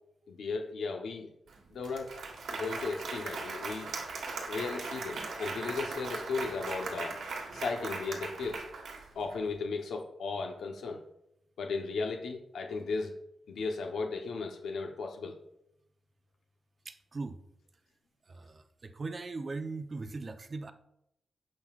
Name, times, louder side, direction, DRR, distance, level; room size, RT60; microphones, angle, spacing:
voice 1, 0.3-1.3 1.7-2.2 2.5-3.9 4.5-7.2 7.5-8.6 9.1-11.0 11.6-13.2 13.5-15.4, left 4 dB, 85° left, 3 dB, 0.9 m, -36 dB
Applause, 1.5-1.6 1.8-9.4, right 4 dB, 80° right, 1.5 m, -39 dB
voice 2, 16.8-17.4 18.3-20.7, right 3 dB, 35° right, 8 dB, 0.6 m, -39 dB
16.0 x 5.4 x 2.5 m, 0.81 s
wide cardioid pair, 120°, 0 cm